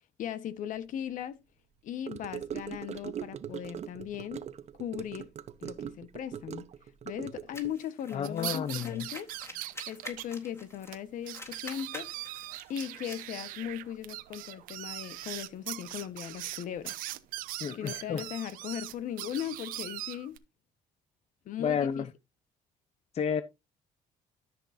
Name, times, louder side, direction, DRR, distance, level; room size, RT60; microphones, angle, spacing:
voice 1, 0.2-1.4 1.8-4.4 4.8-5.3 5.6-6.6 7.0-9.3 9.9-12.1 12.7-17.0 17.7-20.4 21.4-22.1, left 10 dB, 65° left, 1.4 m, -38 dB
Gurgling / Car passing by / Sink (filling or washing), 2.1-7.7, right 9 dB, 50° right, 1.0 m, -41 dB
sound 1, 7.5-11.0 11.2-13.2, left 1 dB, 20° left, 3.8 m, -47 dB
voice 2, 8.1-9.0 17.6-18.2 21.6-22.0 23.1-23.4, left 7 dB, 45° left, 0.8 m, -31 dB
sound 2, 8.2-10.2 10.5-10.6 10.9-11.0 11.3-20.4, right 16 dB, 80° right, 0.9 m, -40 dB
13.5 x 6.1 x 2.8 m
supercardioid pair, 85°, 14 cm